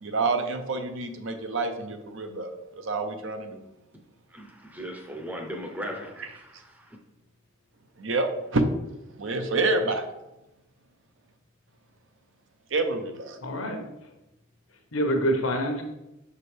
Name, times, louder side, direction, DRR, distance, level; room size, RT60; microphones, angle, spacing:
voice 1, 0.0-3.6 8.0-8.6 9.2-10.1 12.7-13.4, right 3 dB, 65° right, 7 dB, 0.7 m, -28 dB
voice 2, 4.3-7.0, equal, 10° right, 2 dB, 0.6 m, -38 dB
voice 3, 13.4-14.1 14.9-15.8, equal, 75° left, 3 dB, 1.0 m, -27 dB
6.4 x 4.9 x 3.3 m, 0.94 s
head